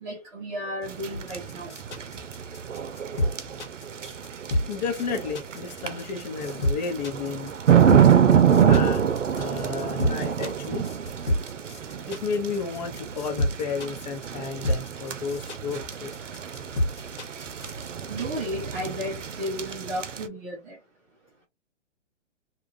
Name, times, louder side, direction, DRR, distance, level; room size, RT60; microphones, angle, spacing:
voice 1, 0.0-1.7 7.4-7.5 18.1-20.8, equal, 10° right, 0.4 m, -33 dB
sound 1, 0.9-20.3, right 8 dB, 80° right, 0.7 m, -26 dB
sound 2, 1.1-17.8, left 1 dB, 75° left, 1.5 m, -28 dB
voice 2, 4.7-7.5 8.6-10.8 12.1-16.1, left 5 dB, 35° left, 0.9 m, -32 dB
2.9 x 2.4 x 2.6 m
figure-of-eight pair, 130°, 36 cm